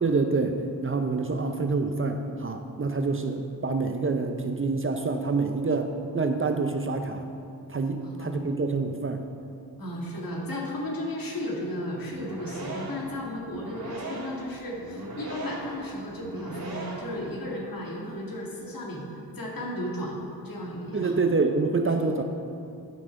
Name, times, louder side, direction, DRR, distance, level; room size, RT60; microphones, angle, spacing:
voice 1, 0.0-7.2 7.7-9.2 20.9-22.2, right 3 dB, 30° right, 6 dB, 0.7 m, -27 dB
voice 2, 8.0-8.3 9.8-19.1 19.3-20.2 20.4-21.2 22.0-22.1, left 1 dB, 55° left, -2 dB, 2.0 m, -34 dB
sound 1, 12.1-17.3, right 2 dB, 65° right, 1.9 m, -38 dB
8.9 x 6.1 x 5.3 m, 2.5 s
cardioid pair, 55°, 40 cm